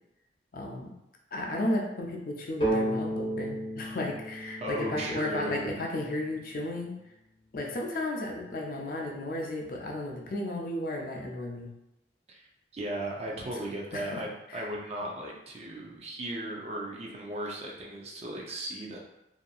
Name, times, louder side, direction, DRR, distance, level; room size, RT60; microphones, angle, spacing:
voice 1, 0.5-0.9 1.3-6.9 7.5-11.7 13.9-14.2 14.5-14.7, left 1 dB, 50° left, 0 dB, 0.4 m, -34 dB
sound 1, 2.6-6.3, right 1 dB, 30° left, 0.9 m, -33 dB
voice 2, 4.6-5.8 12.3-19.0, right 1 dB, 35° right, -1 dB, 0.4 m, -36 dB
2.7 x 2.5 x 2.3 m, 0.90 s
head